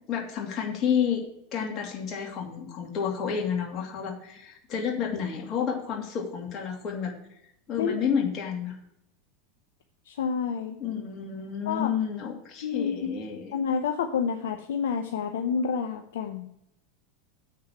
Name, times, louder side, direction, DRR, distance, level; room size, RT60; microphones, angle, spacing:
voice 1, 0.1-1.2 1.5-7.1 7.7-8.7 10.8-13.5, left 7 dB, 40° left, 0 dB, 2.6 m, -30 dB
voice 2, 10.1-10.8 11.7-11.9 12.6-13.2 13.5-16.5, left 6 dB, 65° left, 5 dB, 0.7 m, -29 dB
7.5 x 6.5 x 5.9 m, 0.79 s
figure-of-eight pair, 80°, 0 cm